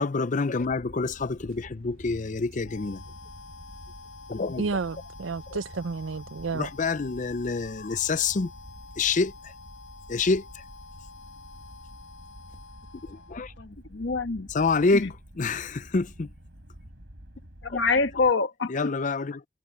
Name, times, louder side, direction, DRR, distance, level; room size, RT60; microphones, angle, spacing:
voice 1, 0.0-3.0 4.3-4.7 6.5-8.5 9.0-9.5 10.1-10.6 13.0-13.5 14.5-16.3 17.7-17.8 18.7-19.5, left 4 dB, 40° left, 0.5 m, -27 dB
sound 1, 0.6-18.3, equal, 65° right, 4.1 m, -48 dB
Harmonica, 2.6-13.7, left 4 dB, 85° left, 6.2 m, -48 dB
voice 2, 4.6-6.7, right 4 dB, 80° right, 0.6 m, -31 dB
voice 3, 13.6-14.5 14.9-15.1 17.6-18.9, left 4 dB, 65° left, 1.3 m, -26 dB
head